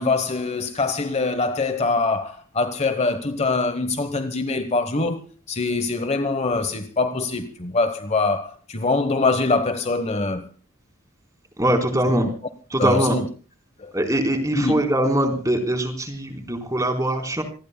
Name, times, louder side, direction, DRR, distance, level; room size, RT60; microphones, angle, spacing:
voice 1, 0.0-10.5 12.0-12.3 12.8-13.3 13.8-13.9 14.5-14.7, left 3 dB, 30° left, 1.1 m, -24 dB
voice 2, 11.6-12.3 12.7-13.2 13.9-17.4, right 1 dB, 15° right, 4.1 m, -22 dB
27.5 x 20.0 x 2.3 m
head